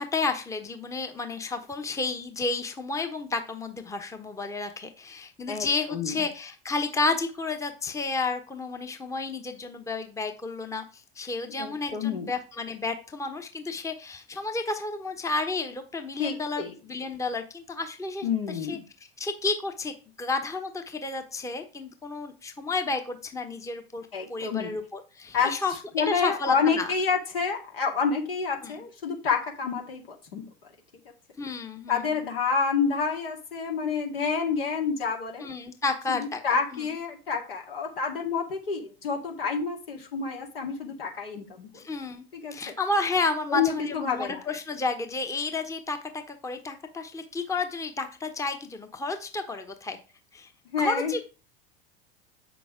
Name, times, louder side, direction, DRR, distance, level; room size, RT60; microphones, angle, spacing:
voice 1, 0.0-18.8 19.2-25.7 26.1-26.9 28.6-28.7 31.4-32.1 35.4-36.4 36.7-36.9 41.7-42.2 42.5-50.0 50.3-50.5 50.8-51.2, left 3 dB, 10° left, 6 dB, 1.0 m, -31 dB
voice 2, 5.5-6.1 11.6-12.3 16.2-16.7 18.2-18.8 24.1-24.8 25.3-25.5 25.9-30.0 30.3-30.5 31.9-35.5 36.1-41.8 42.3-42.5 43.5-44.4 50.7-51.1, left 5 dB, 70° left, 1 dB, 2.0 m, -28 dB
7.7 x 6.1 x 3.7 m, 0.33 s
figure-of-eight pair, 80°, 30 cm